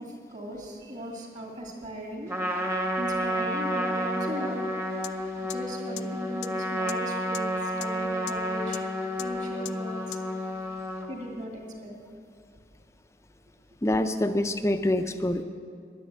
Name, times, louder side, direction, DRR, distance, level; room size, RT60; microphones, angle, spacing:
voice 1, 0.0-2.3 3.0-4.7 5.5-7.5 7.8-8.9 9.2-10.2 11.1-11.9, equal, 45° right, 0 dB, 2.3 m, -38 dB
Trumpet, 2.3-11.1, equal, 15° right, 1.0 m, -30 dB
sound 1, 5.0-5.1 5.5-5.6 6.0-6.1 6.4-6.5 6.9-7.0 7.3-7.4 7.8-7.9 8.3-8.4 8.7-8.8 9.2-9.3 9.6-9.7 10.1-10.2, left 16 dB, 80° left, 0.4 m, -36 dB
voice 2, 13.8-15.4, left 1 dB, 15° left, 9 dB, 0.5 m, -25 dB
10.5 x 10.0 x 7.9 m, 2.3 s
head